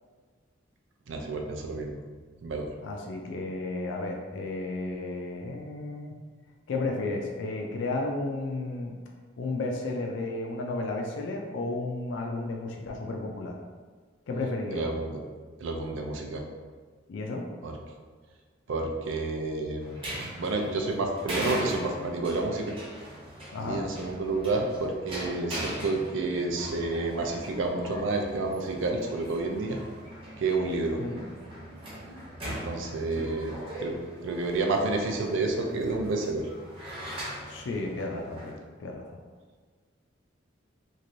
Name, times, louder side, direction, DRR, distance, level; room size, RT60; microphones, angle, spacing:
voice 1, 1.1-2.0 2.4-2.7 14.7-15.1 15.6-16.4 17.6-17.7 18.7-20.0 20.4-22.8 23.6-29.8 30.4-31.0 32.4-36.5, right 3 dB, 80° right, 2 dB, 0.4 m, -30 dB
voice 2, 2.8-6.1 6.7-8.9 9.4-13.5 14.3-14.8 17.1-17.5 23.5-23.8 31.0-31.2 37.5-39.2, left 2 dB, 70° left, 1 dB, 0.4 m, -33 dB
sound 1, 19.8-38.5, equal, 30° right, 0.7 m, -40 dB
3.1 x 2.5 x 2.5 m, 1.5 s
head